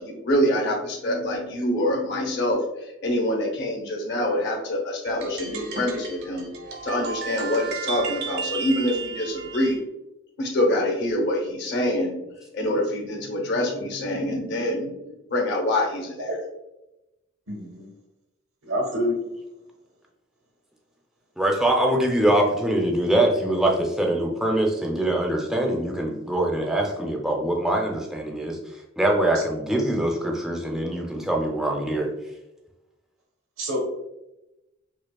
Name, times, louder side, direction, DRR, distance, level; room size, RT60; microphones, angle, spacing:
voice 1, 0.0-2.6 3.0-6.5 6.8-9.8 10.4-12.1 12.5-14.9 15.3-16.3, left 1 dB, 55° left, 1 dB, 0.8 m, -25 dB
sound 1, 5.0-9.8, right 5 dB, 55° right, 0.6 m, -34 dB
voice 2, 17.5-17.9 18.6-19.2 29.3-29.4 33.6-33.8, equal, 85° right, 0 dB, 0.8 m, -27 dB
voice 3, 21.4-28.6 29.0-32.1, right 1 dB, ahead, 0 dB, 0.5 m, -23 dB
5.0 x 2.1 x 2.2 m, 0.94 s
head